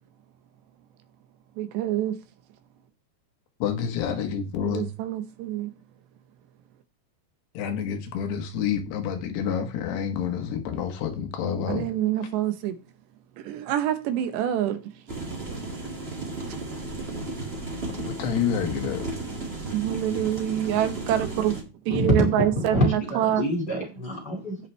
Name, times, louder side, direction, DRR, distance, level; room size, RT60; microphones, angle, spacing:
voice 1, 1.6-2.2 4.6-5.7 11.7-12.8 13.4-14.8 19.7-21.5 21.9-23.4, right 11 dB, 85° right, 3.2 m, -26 dB
voice 2, 3.6-4.9 7.5-11.9 18.1-19.0, left 7 dB, 75° left, 3.3 m, -28 dB
sound 1, 15.1-21.6, right 2 dB, 35° right, 0.9 m, -34 dB
voice 3, 21.9-24.6, equal, 30° left, 2.0 m, -25 dB
17.5 x 5.8 x 3.3 m
omnidirectional pair, 4.9 m